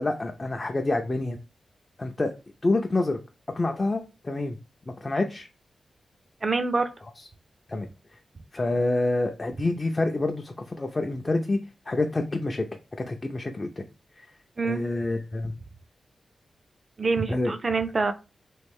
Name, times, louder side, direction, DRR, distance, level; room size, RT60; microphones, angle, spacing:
voice 1, 0.0-1.4 2.0-2.3 2.6-3.2 3.5-4.6 4.9-5.5 7.7-7.9 8.5-11.6 11.9-12.7 13.1-13.8 14.2-14.3 14.6-15.5 17.3-17.5, left 2 dB, 30° left, 3 dB, 0.4 m, -27 dB
voice 2, 6.4-6.9 14.6-14.8 17.0-18.1, right 3 dB, 35° right, 9 dB, 0.4 m, -25 dB
3.1 x 2.4 x 3.5 m, 0.30 s
wide cardioid pair, 110°, 0 cm